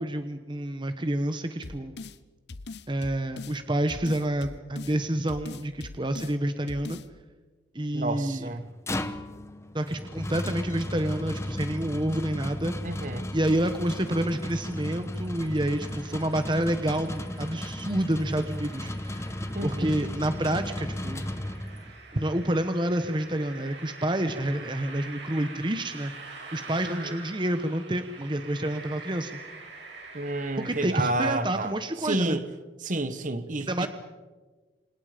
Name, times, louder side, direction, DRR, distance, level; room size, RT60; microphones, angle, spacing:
voice 1, 0.0-1.9 2.9-7.0 7.7-8.5 9.7-13.1 13.3-19.3 19.6-21.3 22.1-29.3 30.6-32.4 33.6-33.9, right 1 dB, 25° right, 1.1 m, -28 dB
sound 1, 1.6-2.2 2.5-3.6 3.9-5.0 5.3-6.3 6.7-7.1, left 3 dB, 70° left, 0.9 m, -41 dB
voice 2, 7.9-8.7 12.8-13.3 19.5-19.9 26.8-27.2 30.1-32.4 32.8-33.9, right 2 dB, 45° right, 1.4 m, -30 dB
sound 2, 8.5-22.0, left 1 dB, 15° left, 1.2 m, -35 dB
sound 3, 15.8-30.9, right 3 dB, 80° right, 6.9 m, -46 dB
29.5 x 26.0 x 5.2 m
head